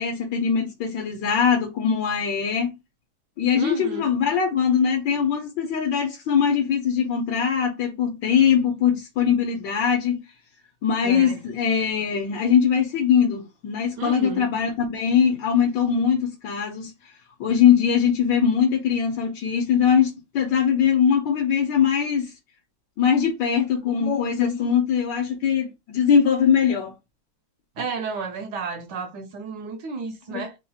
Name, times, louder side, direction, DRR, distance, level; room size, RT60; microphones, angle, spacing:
voice 1, 0.0-2.8 3.4-10.2 10.8-17.1 17.4-22.3 23.0-26.9 30.3-30.4, left 7 dB, 75° left, 1.3 m, -21 dB
voice 2, 3.5-4.0 11.0-11.4 14.0-14.4 27.8-30.6, right 4 dB, 70° right, 1.2 m, -32 dB
3.6 x 2.4 x 2.7 m
omnidirectional pair, 2.1 m